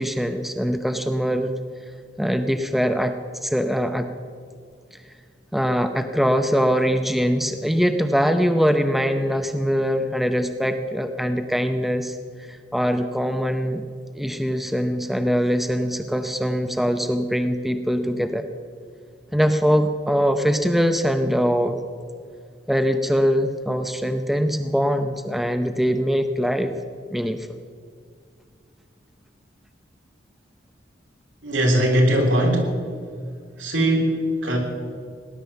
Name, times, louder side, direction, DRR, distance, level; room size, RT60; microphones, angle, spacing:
voice 1, 0.0-1.6 2.2-3.1 3.4-4.1 5.5-12.2 12.5-13.8 14.1-18.4 19.3-21.8 22.7-26.7 27.1-27.6, equal, ahead, 7 dB, 0.6 m, -22 dB
voice 2, 31.4-32.7 33.6-34.6, equal, 85° right, 1 dB, 3.7 m, -20 dB
18.5 x 11.0 x 7.0 m, 2.1 s
head